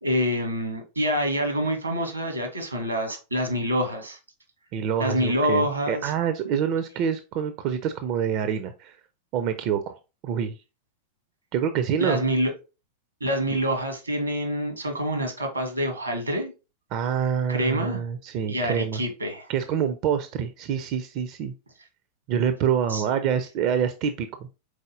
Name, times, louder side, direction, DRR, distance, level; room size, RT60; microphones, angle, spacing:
voice 1, 0.0-4.2 5.0-6.1 12.0-12.5 13.2-16.5 17.5-18.0 18.5-19.5 22.9-23.0, equal, 80° right, 1.2 m, -26 dB
voice 2, 4.7-9.0 9.3-10.6 11.5-12.2 16.9-19.0 19.5-21.5 22.3-24.5, right 8 dB, 40° right, 0.4 m, -26 dB
4.8 x 4.0 x 2.6 m
figure-of-eight pair, 90°, 0 cm